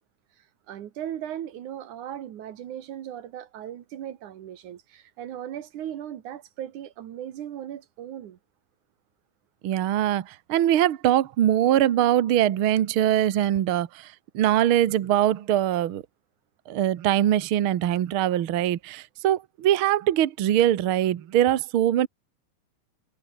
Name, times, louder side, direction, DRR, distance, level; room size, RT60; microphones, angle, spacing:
voice 1, 0.7-8.4, right 11 dB, 85° right, 3.1 m, -37 dB
voice 2, 9.6-16.0 16.7-22.1, right 12 dB, 55° right, 1.7 m, -22 dB
omnidirectional pair, 3.4 m